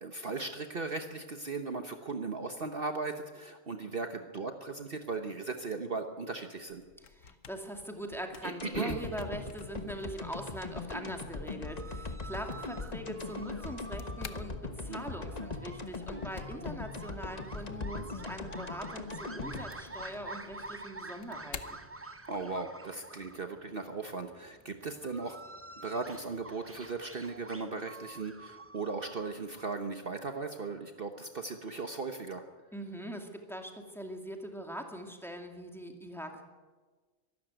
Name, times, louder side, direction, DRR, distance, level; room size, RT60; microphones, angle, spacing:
voice 1, 0.0-6.8 8.4-9.0 14.8-15.0 22.3-25.4 25.8-32.5, right 3 dB, 45° right, 6 dB, 1.3 m, -37 dB
sound 1, 6.8-22.6, left 7 dB, 70° left, 1.4 m, -53 dB
voice 2, 7.1-21.8 32.7-36.4, equal, ahead, 3 dB, 2.4 m, -42 dB
sound 2, 8.6-20.8 21.2-21.3, left 3 dB, 30° left, 1.3 m, -41 dB
sound 3, 11.6-29.7, right 2 dB, 15° right, 0.6 m, -48 dB
23.5 x 12.5 x 9.2 m, 1.4 s
omnidirectional pair, 1.4 m